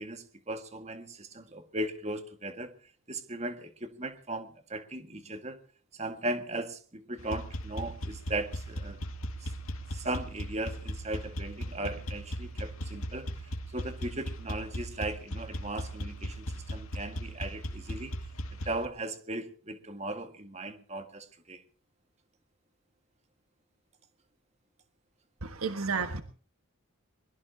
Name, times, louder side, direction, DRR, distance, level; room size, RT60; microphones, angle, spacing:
voice 1, 0.0-2.7 3.1-5.6 5.9-9.0 9.4-9.5 9.9-18.2 18.6-21.6, right 1 dB, 30° right, 8 dB, 1.8 m, -37 dB
sound 1, 7.2-18.9, equal, 85° left, 2.2 m, -37 dB
voice 2, 25.4-26.2, right 5 dB, 90° right, 8 dB, 1.5 m, -31 dB
22.0 x 22.0 x 2.8 m, 0.40 s
head